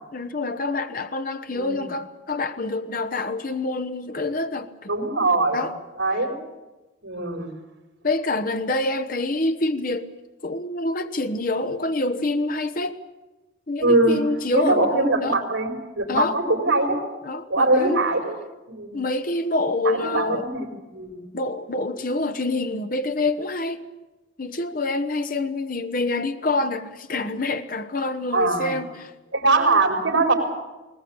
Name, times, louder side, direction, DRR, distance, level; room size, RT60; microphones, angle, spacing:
voice 1, 0.1-4.9 5.5-5.7 8.0-10.1 10.4-13.0 13.7-15.4 16.1-16.4 17.2-18.0 18.9-20.5 21.3-23.8 24.4-29.1, left 2 dB, 45° left, 1.0 m, -26 dB
voice 2, 4.9-5.6 6.0-6.4 7.0-7.5 13.8-14.2 14.5-17.0 17.5-18.4 18.7-18.9 19.8-21.2 28.3-28.7 29.3-30.3, right 2 dB, 85° right, 4.6 m, -22 dB
20.0 x 19.5 x 8.8 m
head